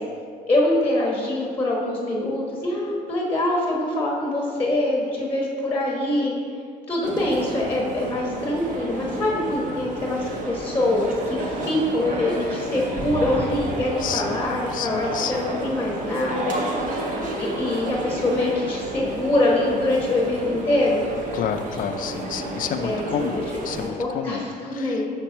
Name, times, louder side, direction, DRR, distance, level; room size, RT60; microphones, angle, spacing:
voice 1, 0.5-6.3 6.9-16.6 17.4-21.0 22.8-23.3 24.0-25.1, left 1 dB, 10° left, -2 dB, 1.0 m, -24 dB
sound 1, 7.0-23.9, right 1 dB, 50° right, 0.9 m, -31 dB
sound 2, 13.0-15.7, right 4 dB, 30° right, 0.5 m, -36 dB
voice 2, 14.0-14.4 14.7-15.5 21.3-25.1, left 8 dB, 55° left, 8 dB, 0.4 m, -30 dB
5.9 x 4.1 x 4.5 m, 2.2 s
cardioid pair, 110°, 17 cm